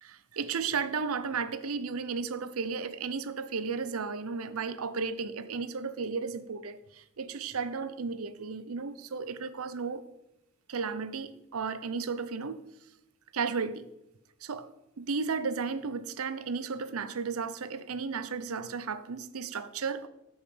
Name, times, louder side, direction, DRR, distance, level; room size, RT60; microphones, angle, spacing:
voice 1, 0.0-10.0 10.7-12.6 13.3-13.9 14.4-14.7 15.0-20.1, right 5 dB, 85° right, 0.7 m, -34 dB
13.0 x 5.4 x 5.0 m
head